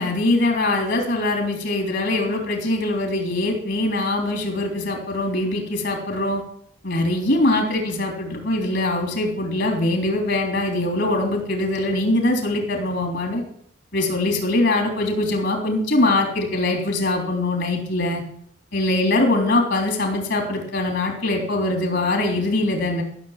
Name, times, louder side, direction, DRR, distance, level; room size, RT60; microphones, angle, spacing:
voice 1, 0.0-6.4 6.8-13.4 13.9-18.2 18.7-23.0, left 2 dB, 60° left, 1 dB, 3.4 m, -22 dB
14.5 x 6.8 x 7.4 m, 0.67 s
head